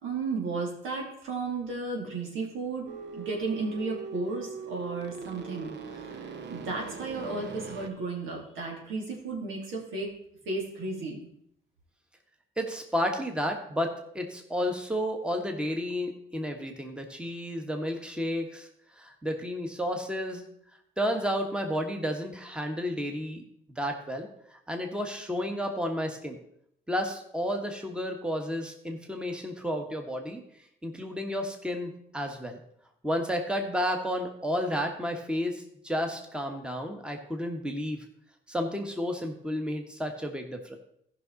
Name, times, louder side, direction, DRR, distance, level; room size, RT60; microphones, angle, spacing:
voice 1, 0.0-10.2 10.4-11.2, right 3 dB, 85° right, -1 dB, 2.9 m, -34 dB
sound 1, 2.9-7.9, right 5 dB, 60° right, 1.0 m, -41 dB
voice 2, 12.6-18.7 19.0-20.4 21.0-23.4 23.8-26.4 26.9-30.4 30.8-32.6 33.0-38.0 38.5-40.8, equal, 5° right, 4 dB, 1.5 m, -32 dB
14.5 x 5.8 x 4.1 m, 0.72 s
cardioid pair, 90°, 20 cm